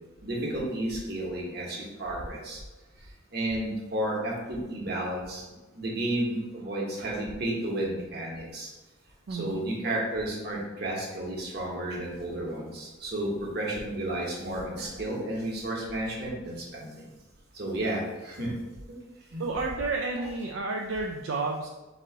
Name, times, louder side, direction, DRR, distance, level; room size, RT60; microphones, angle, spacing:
voice 1, 0.2-2.6 3.3-5.4 5.7-8.7 9.3-17.1 17.5-18.5 19.3-19.4, right 1 dB, 50° right, -3 dB, 1.1 m, -32 dB
voice 2, 19.4-21.7, right 3 dB, 70° right, 0 dB, 0.4 m, -31 dB
3.8 x 3.0 x 4.4 m, 1.1 s
head